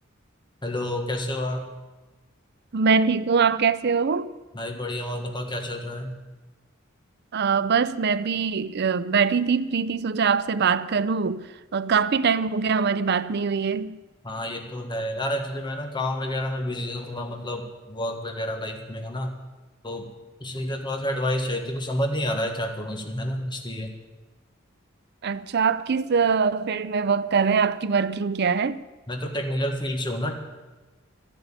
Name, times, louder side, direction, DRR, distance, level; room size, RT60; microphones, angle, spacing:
voice 1, 0.6-1.7 4.5-6.1 14.2-19.3 19.8-20.1 20.4-23.9 29.1-30.3, left 1 dB, 25° left, 1.6 m, -29 dB
voice 2, 2.7-4.3 7.3-11.5 11.7-14.0 25.2-28.8, right 5 dB, 55° right, 0.5 m, -23 dB
12.5 x 11.0 x 8.8 m
head